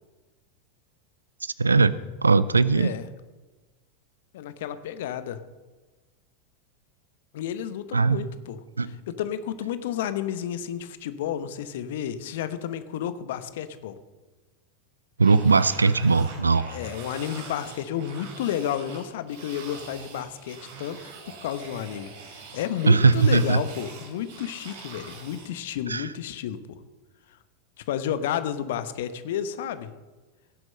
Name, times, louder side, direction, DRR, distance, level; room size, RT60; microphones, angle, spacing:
voice 1, 1.6-2.0 2.2-2.9 7.9-8.2 8.8-8.9 15.2-16.7 22.9-23.6 25.9-26.1, right 4 dB, 85° right, 18 dB, 0.5 m, -19 dB
voice 2, 2.7-3.1 4.3-5.4 7.3-8.6 9.1-14.0 16.7-21.0 21.3-26.8 27.9-29.9, left 10 dB, 65° left, 12 dB, 1.0 m, -31 dB
sound 1, 15.2-25.5, right 5 dB, 60° right, 3.0 m, -43 dB
17.0 x 7.8 x 6.5 m, 1.2 s
figure-of-eight pair, 85°, 0 cm